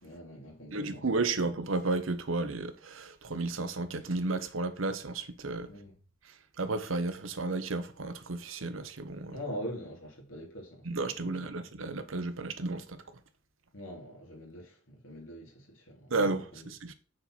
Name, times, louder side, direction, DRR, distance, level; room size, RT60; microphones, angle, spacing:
voice 1, 0.0-1.1 5.6-6.0 9.3-11.7 13.7-16.1 16.5-16.7, equal, 90° left, 3.0 m, -43 dB
voice 2, 0.7-5.7 6.6-9.4 10.8-13.0 16.1-16.9, right 3 dB, 90° right, 0.9 m, -33 dB
6.6 x 4.3 x 6.0 m
head